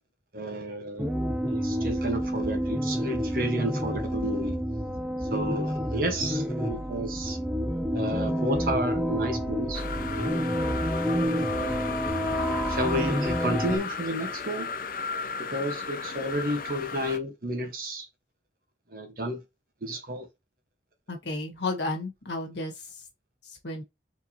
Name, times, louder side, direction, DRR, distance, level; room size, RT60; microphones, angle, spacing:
voice 1, 0.3-1.1 1.5-4.6 5.3-7.4 7.9-9.8 10.1-10.6 11.5-12.2 12.7-14.7 15.0-18.1 18.9-19.4 19.8-20.3, right 1 dB, 55° right, 1.4 m, -32 dB
sound 1, 1.0-13.8, equal, 10° right, 0.7 m, -29 dB
sound 2, 9.7-17.2, left 5 dB, 50° left, 0.5 m, -35 dB
voice 2, 21.1-23.0 23.4-23.8, left 2 dB, 85° left, 1.6 m, -33 dB
4.7 x 3.8 x 2.9 m
head